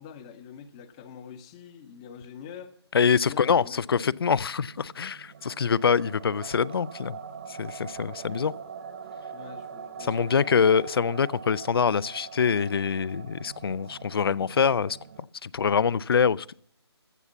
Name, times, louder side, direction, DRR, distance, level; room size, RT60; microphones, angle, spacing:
voice 1, 0.0-2.7 3.0-4.1 9.3-10.7, left 7 dB, 10° left, 0.6 m, -45 dB
voice 2, 2.9-7.2 7.6-8.5 10.0-15.0 15.4-16.5, left 6 dB, 60° left, 0.4 m, -24 dB
sound 1, 3.9-15.2, right 6 dB, 35° right, 1.0 m, -43 dB
15.0 x 7.1 x 7.1 m
figure-of-eight pair, 165°, 14 cm